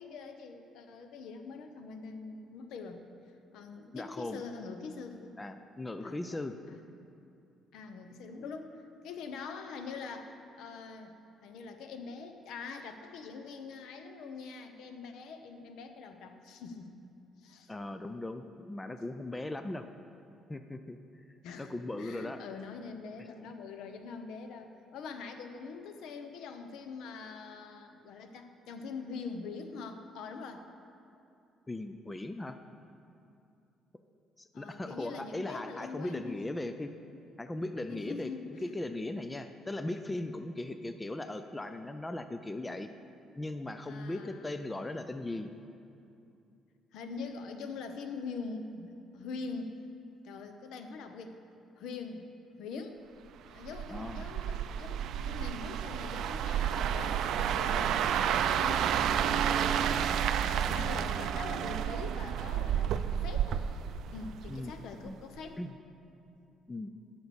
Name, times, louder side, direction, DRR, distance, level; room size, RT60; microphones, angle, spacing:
voice 1, 0.0-3.0 3.5-5.4 6.0-6.4 6.7-6.9 7.7-16.9 17.4-17.7 21.4-30.7 34.5-36.3 37.9-38.7 43.8-45.0 46.9-49.7 50.2-51.4 51.8-52.3 52.6-53.0 53.5-60.1 60.4-63.6 64.1-65.6, left 4 dB, 75° left, 7 dB, 0.9 m, -44 dB
voice 2, 3.9-4.4 5.4-6.6 17.7-19.9 20.5-21.2 21.6-22.4 23.2-23.3 31.7-32.6 34.4-36.9 37.4-38.3 38.6-42.9 43.4-45.5 53.9-54.3 64.5-64.7 65.0-65.2 65.6-65.7 66.7-66.9, left 2 dB, 10° left, 9 dB, 0.3 m, -38 dB
sound 1, 53.6-64.7 65.1-65.4, right 9 dB, 65° right, 0.4 m, -31 dB
10.5 x 5.9 x 7.0 m, 2.7 s
cardioid pair, 145°, 0 cm